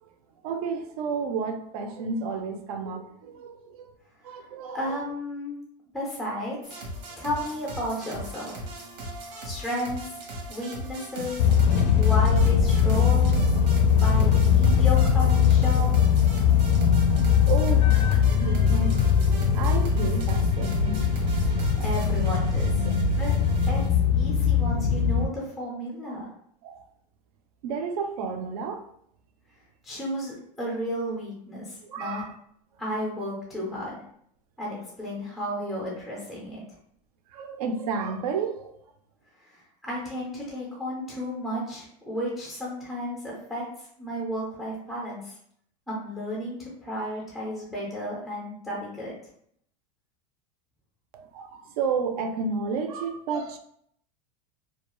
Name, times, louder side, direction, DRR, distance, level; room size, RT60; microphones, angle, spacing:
voice 1, 0.4-3.9 4.2-5.0 17.4-19.0 19.5-21.1 22.8-22.9 26.6-26.9 27.6-28.9 31.8-32.3 37.3-38.8 51.1-53.6, right 5 dB, 65° right, 0.4 m, -31 dB
voice 2, 4.7-5.6 5.9-6.8 7.2-8.6 9.4-10.2 10.5-11.5 12.0-13.3 13.9-16.1 21.8-22.7 23.2-23.4 23.7-23.8 24.1-26.3 29.8-32.2 32.8-34.0 34.6-36.6 39.4-43.6 44.0-45.3 45.9-49.2, equal, ahead, 0.4 m, -33 dB
sound 1, 6.6-23.9, right 1 dB, 85° right, 0.9 m, -38 dB
sound 2, 11.4-25.3, left 7 dB, 90° left, 0.4 m, -21 dB
2.3 x 2.2 x 2.9 m
supercardioid pair, 175°, 21 cm